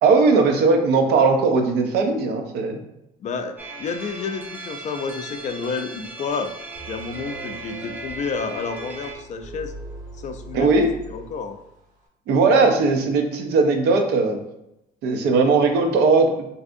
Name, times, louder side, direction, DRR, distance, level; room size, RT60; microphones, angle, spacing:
voice 1, 0.0-2.8 10.5-10.9 12.3-14.4 15.0-16.3, right 4 dB, 80° right, 4 dB, 0.6 m, -18 dB
voice 2, 3.2-6.5 6.9-9.7 10.2-10.7 11.1-11.6, left 5 dB, 45° left, 7 dB, 0.4 m, -30 dB
sound 1, 3.6-9.1, right 2 dB, 10° right, 0.5 m, -37 dB
sound 2, 6.7-11.7, right 2 dB, 50° right, 0.9 m, -40 dB
3.4 x 2.6 x 2.5 m, 0.86 s
cardioid pair, 110°, 17 cm